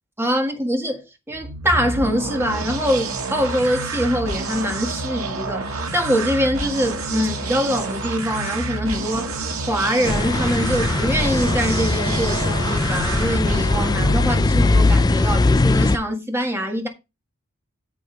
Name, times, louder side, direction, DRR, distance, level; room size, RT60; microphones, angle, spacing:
voice 1, 0.2-16.9, equal, 10° right, 1.7 m, -24 dB
sound 1, 1.3-15.1, right 3 dB, 75° right, 1.9 m, -28 dB
sound 2, 10.0-16.0, left 2 dB, 20° left, 0.4 m, -20 dB
9.1 x 7.6 x 3.3 m
head